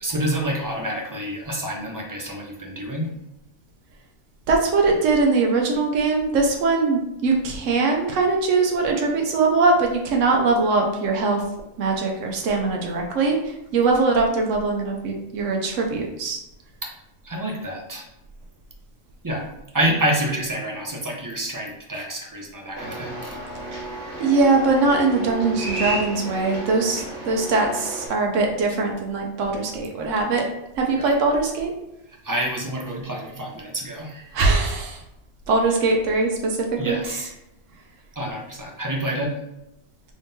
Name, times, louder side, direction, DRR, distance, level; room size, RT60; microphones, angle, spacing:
voice 1, 0.0-3.1 16.8-16.9 17.2-18.1 19.2-19.5 19.7-23.4 31.0-31.1 32.2-34.4 36.8-37.3 38.2-39.4, right 1 dB, 30° right, -1 dB, 0.3 m, -28 dB
voice 2, 4.5-11.4 11.8-16.4 24.2-30.4 30.8-31.7 34.3-35.0 35.5-37.2, right 3 dB, 90° right, 1 dB, 1.0 m, -21 dB
sound 1, 22.8-28.1, right 2 dB, 65° right, 1.4 m, -32 dB
3.7 x 3.6 x 2.7 m, 0.88 s
omnidirectional pair, 1.3 m